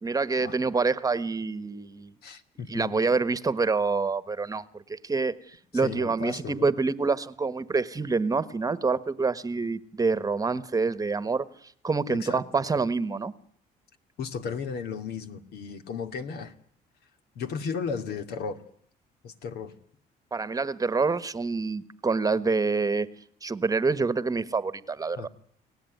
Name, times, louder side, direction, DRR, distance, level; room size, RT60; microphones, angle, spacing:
voice 1, 0.0-2.1 2.7-11.4 11.8-13.3 20.3-23.1 23.4-25.3, right 4 dB, 20° right, 15 dB, 1.3 m, -27 dB
voice 2, 2.2-3.0 5.8-6.7 12.1-12.4 14.2-16.5 17.4-18.6 19.2-19.7 25.2-25.3, left 5 dB, 70° left, 8 dB, 2.4 m, -35 dB
29.5 x 18.5 x 9.4 m, 0.66 s
cardioid pair, 110°, 17 cm